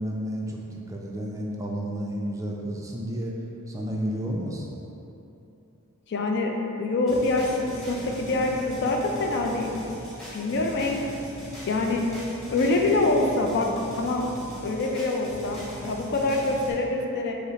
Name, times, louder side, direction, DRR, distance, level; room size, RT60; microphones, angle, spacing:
voice 1, 0.0-3.3 3.7-4.7, equal, 15° right, -2 dB, 0.3 m, -31 dB
voice 2, 6.1-9.8 10.3-11.1 11.7-12.1 12.5-14.3 14.6-17.4, left 2 dB, 50° left, 1 dB, 0.4 m, -25 dB
sound 1, 7.1-16.7, equal, ahead, 1.0 m, -40 dB
5.4 x 2.0 x 4.0 m, 2.9 s
head